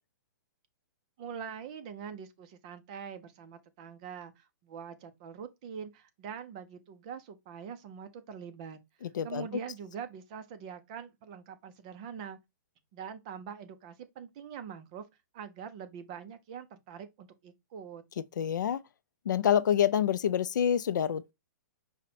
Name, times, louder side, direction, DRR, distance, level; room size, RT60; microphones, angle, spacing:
voice 1, 1.2-12.4 12.9-15.0 15.3-18.0, right 7 dB, 20° right, 0.4 m, -44 dB
voice 2, 9.0-9.5 18.4-18.8 19.3-21.3, left 9 dB, 75° left, 0.4 m, -27 dB
5.5 x 2.1 x 4.1 m
hypercardioid pair, 175°, 10 cm